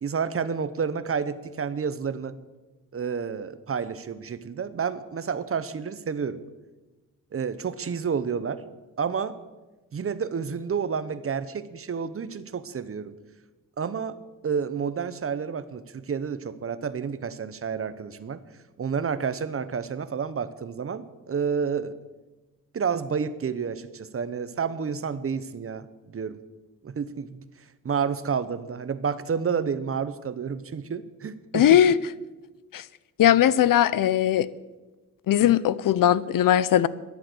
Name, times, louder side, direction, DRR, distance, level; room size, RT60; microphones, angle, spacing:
voice 1, 0.0-2.3 2.9-6.4 7.3-8.6 9.0-9.3 9.9-13.1 13.8-14.2 14.4-18.4 18.8-21.9 22.7-25.9 26.1-26.4 26.8-27.4 27.8-31.8, right 6 dB, 40° right, 0.9 m, -30 dB
voice 2, 31.5-31.9 32.7-32.8 33.2-34.5 35.3-36.9, left 11 dB, 75° left, 0.6 m, -19 dB
13.0 x 10.5 x 7.9 m
wide cardioid pair, 115°, 33 cm